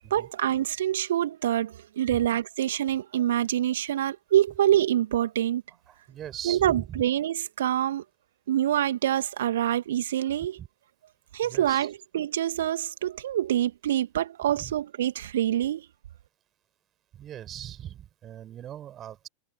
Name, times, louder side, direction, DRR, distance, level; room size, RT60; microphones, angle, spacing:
voice 1, 0.1-5.6 6.4-8.0 8.5-10.6 11.3-15.9, right 11 dB, 60° right, 2.4 m, -26 dB
voice 2, 5.9-7.0 10.5-10.7 11.4-11.9 14.6-14.7 17.1-19.3, right 11 dB, 30° right, 6.5 m, -40 dB
figure-of-eight pair, 90°, 0 cm